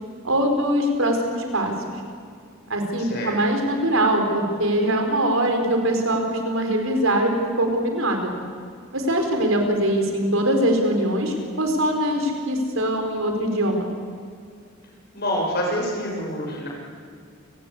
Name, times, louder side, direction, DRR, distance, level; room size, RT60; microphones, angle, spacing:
voice 1, 0.2-1.7 2.7-8.3 8.9-13.9, right 1 dB, 75° right, 4 dB, 4.2 m, -22 dB
voice 2, 3.0-3.4 15.1-16.7, equal, 50° left, -1 dB, 7.0 m, -26 dB
29.0 x 17.0 x 8.4 m, 2.2 s
head